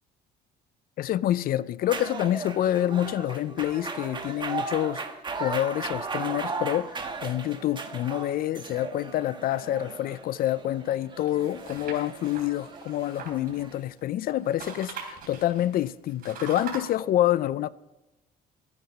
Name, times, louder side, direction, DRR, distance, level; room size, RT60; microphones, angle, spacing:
voice 1, 1.0-5.0 5.4-6.9 7.2-17.7, left 13 dB, 60° left, 0.5 m, -27 dB
sound 1, 1.8-13.8, right 4 dB, 25° right, 1.4 m, -37 dB
sound 2, 11.3-14.1 14.4-16.8, right 6 dB, 60° right, 3.8 m, -42 dB
13.0 x 9.4 x 5.2 m
cardioid pair, 110°, 17 cm